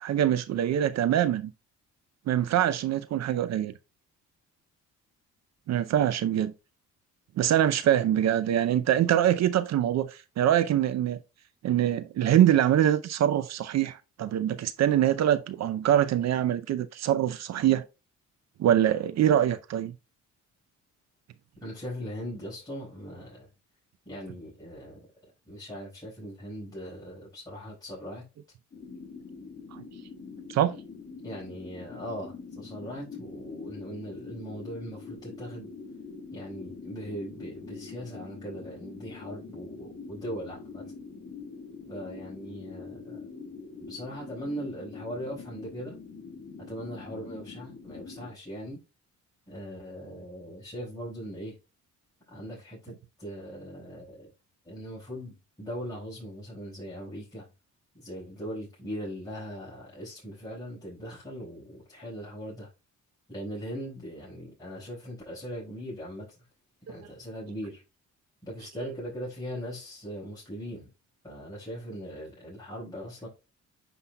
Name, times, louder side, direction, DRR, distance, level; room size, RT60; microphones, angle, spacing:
voice 1, 0.0-1.5 2.3-3.7 5.7-6.5 7.4-11.2 11.6-17.8 18.6-19.9 29.7-29.8 30.5-30.7 67.0-67.1, right 11 dB, 60° right, 0.5 m, -24 dB
voice 2, 21.6-23.5 24.0-25.0 25.5-28.2 31.2-35.7 36.3-40.8 41.9-43.2 43.9-45.9 46.7-48.8 49.5-51.6 52.3-52.9 53.2-54.3 54.6-57.5 57.9-62.7 63.3-66.4 66.9-67.8 68.4-70.9 71.2-73.3, equal, 10° left, 4.7 m, -40 dB
sound 1, 28.7-48.3, left 4 dB, 30° left, 2.2 m, -44 dB
9.8 x 5.5 x 2.2 m
cardioid pair, 90°, 30 cm